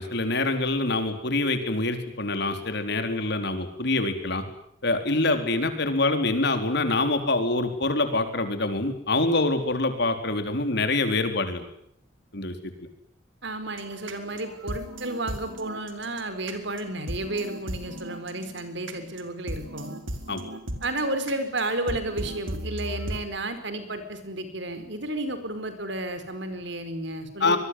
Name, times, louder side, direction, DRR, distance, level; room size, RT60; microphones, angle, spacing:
voice 1, 0.0-4.4 4.8-11.7 12.3-12.5 20.3-20.4 27.4-27.6, left 2 dB, 60° left, 7 dB, 4.2 m, -25 dB
voice 2, 13.4-20.0 20.8-27.6, right 2 dB, 65° right, 10 dB, 4.9 m, -32 dB
sound 1, 13.7-23.2, right 1 dB, 85° right, 4.3 m, -37 dB
25.5 x 22.0 x 9.7 m, 0.72 s
head